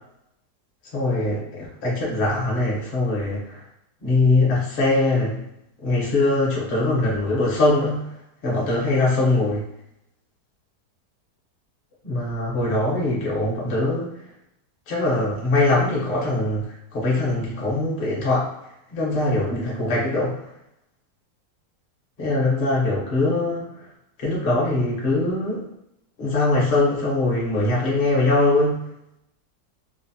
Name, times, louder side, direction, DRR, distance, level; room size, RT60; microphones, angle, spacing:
voice 1, 0.9-3.6 4.0-5.4 5.8-8.1 8.4-9.6 12.0-14.1 14.9-18.5 18.9-20.4 22.2-23.9 24.2-25.6 26.2-28.8, left 2 dB, 45° left, -5 dB, 0.7 m, -22 dB
3.1 x 2.0 x 2.6 m, 0.82 s
omnidirectional pair, 1.8 m